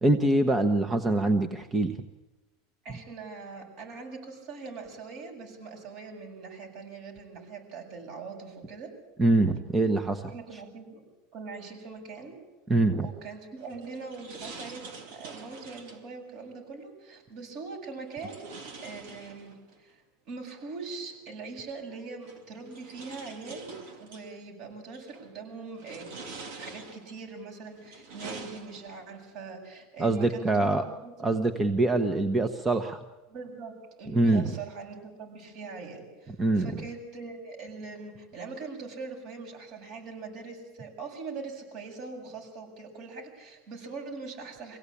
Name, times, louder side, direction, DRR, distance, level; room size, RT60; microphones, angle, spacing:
voice 1, 0.0-2.0 2.9-3.0 9.2-10.3 12.7-13.1 30.0-30.8 31.2-33.0 34.1-34.5 36.4-36.8, right 2 dB, 20° right, 7 dB, 1.2 m, -24 dB
voice 2, 2.8-8.9 10.3-11.0 11.3-12.3 13.0-18.5 18.8-30.7 31.0-31.6 33.3-44.8, right 4 dB, 55° right, 3 dB, 7.4 m, -42 dB
sound 1, 13.6-16.1 18.1-19.8 21.1-21.2 22.2-24.3 24.9-25.3 25.7-27.2 27.7-29.1, right 4 dB, 75° right, 2.5 m, -45 dB
24.0 x 17.0 x 8.6 m, 1.1 s
supercardioid pair, 125°, 0 cm